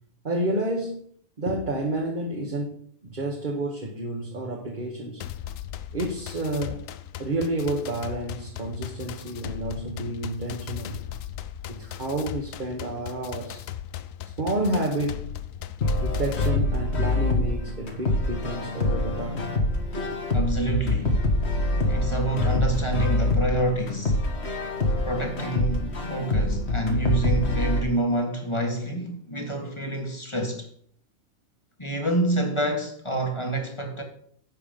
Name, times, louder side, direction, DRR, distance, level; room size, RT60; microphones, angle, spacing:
voice 1, 0.2-1.0 1.4-5.3 5.9-6.8 7.2-11.0 11.8-13.6 14.4-15.3 16.0-19.5 20.0-20.1, right 1 dB, 35° right, 1.5 m, -30 dB
sound 1, 5.2-16.5, left 11 dB, 70° left, 1.0 m, -38 dB
sound 2, 15.8-27.8, left 2 dB, 50° left, 1.7 m, -25 dB
voice 2, 20.3-21.2 21.9-24.2 25.0-30.7 31.8-34.0, right 2 dB, 20° left, 1.6 m, -27 dB
11.0 x 7.1 x 5.2 m
omnidirectional pair, 1.5 m